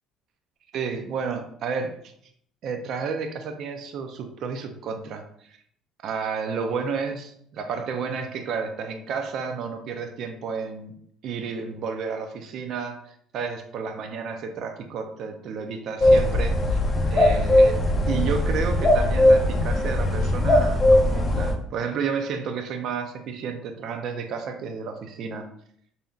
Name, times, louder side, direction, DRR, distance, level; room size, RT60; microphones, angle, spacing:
voice 1, 0.7-2.1 2.6-5.6 6.0-10.9 11.2-16.8 17.1-25.5, right 5 dB, 55° right, 6 dB, 0.5 m, -31 dB
sound 1, 16.0-21.5, left 1 dB, 25° left, 0.5 m, -19 dB
5.1 x 2.8 x 2.4 m, 0.66 s
cardioid pair, 130°, 0 cm